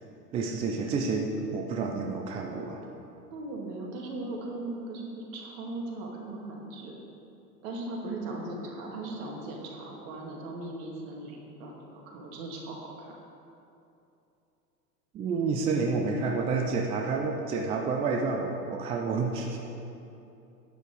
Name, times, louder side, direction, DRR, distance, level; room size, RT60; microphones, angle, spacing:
voice 1, 0.3-2.8 15.1-19.6, right 4 dB, 15° right, 2 dB, 0.3 m, -29 dB
voice 2, 3.3-6.9 7.6-13.2, right 2 dB, 45° right, -1 dB, 2.5 m, -38 dB
11.0 x 9.1 x 4.8 m, 2.8 s
figure-of-eight pair, 90°, 49 cm